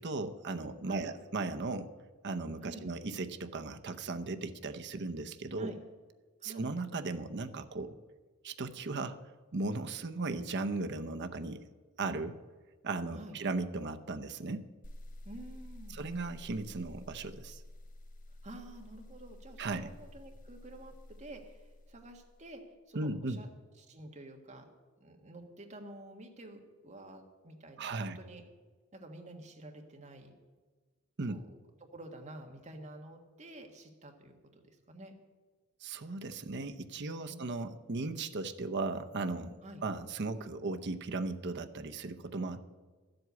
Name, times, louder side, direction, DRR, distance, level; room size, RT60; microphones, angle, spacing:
voice 1, 0.0-1.9 2.2-5.7 6.4-7.9 8.4-9.2 9.5-11.6 12.0-12.4 12.8-14.6 15.9-17.6 19.6-19.9 22.9-23.4 27.8-28.2 31.2-31.4 35.8-39.5 39.8-42.7, right 3 dB, 50° right, 8 dB, 0.7 m, -37 dB
voice 2, 6.4-6.7 13.1-13.4 15.2-16.0 18.4-22.6 22.9-23.5 23.8-24.6 25.0-28.4 28.9-30.3 31.3-31.5 31.9-35.1 37.3-37.5 39.6-39.8, right 1 dB, 30° right, 3 dB, 1.6 m, -49 dB
sound 1, 14.8-22.6, left 1 dB, 35° left, 0.8 m, -51 dB
12.0 x 7.9 x 8.2 m, 1.4 s
head